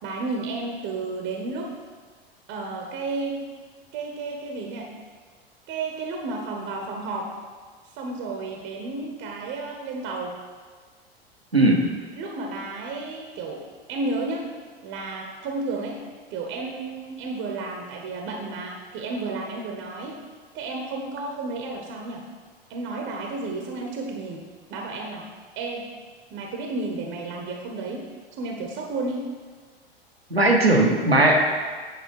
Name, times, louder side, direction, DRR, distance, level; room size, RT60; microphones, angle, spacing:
voice 1, 0.0-1.8 2.5-3.5 3.9-4.9 5.7-7.4 7.9-10.4 12.2-14.5 14.8-16.0 16.3-20.2 20.5-22.3 22.7-25.3 25.6-25.9 26.3-28.1 28.4-29.3, right 3 dB, 40° right, 1 dB, 1.1 m, -32 dB
voice 2, 11.5-11.8 30.3-31.4, right 2 dB, 90° right, 0 dB, 1.2 m, -18 dB
8.8 x 4.9 x 4.8 m, 1.5 s
figure-of-eight pair, 85°, 30 cm